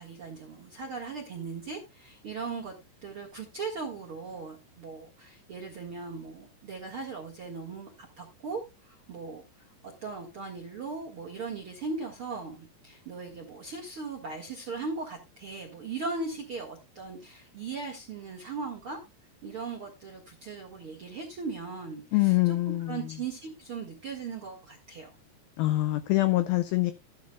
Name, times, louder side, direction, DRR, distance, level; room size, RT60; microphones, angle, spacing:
voice 1, 0.0-2.7 3.0-19.0 19.4-25.1, right 4 dB, 55° right, 1.4 m, -38 dB
voice 2, 22.1-23.2 25.6-26.9, left 18 dB, 85° left, 2.1 m, -25 dB
14.5 x 10.5 x 2.3 m
omnidirectional pair, 5.1 m